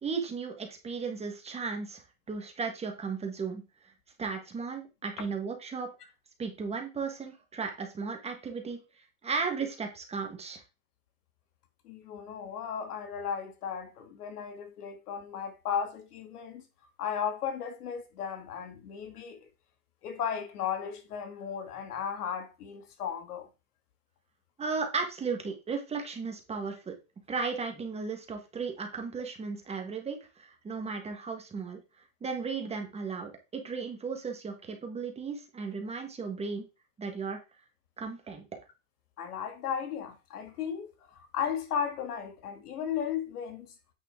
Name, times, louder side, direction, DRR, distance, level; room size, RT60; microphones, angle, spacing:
voice 1, 0.0-3.6 4.2-5.9 6.4-8.8 9.2-10.6 24.6-26.9 27.3-31.8 32.2-36.7 37.0-37.4 38.0-38.5, right 5 dB, 15° right, 1.5 m, -35 dB
voice 2, 11.8-16.6 17.0-19.4 20.0-23.5 39.2-43.7, left 7 dB, 80° left, 2.2 m, -35 dB
9.0 x 5.3 x 3.7 m
supercardioid pair, 140°, 45 cm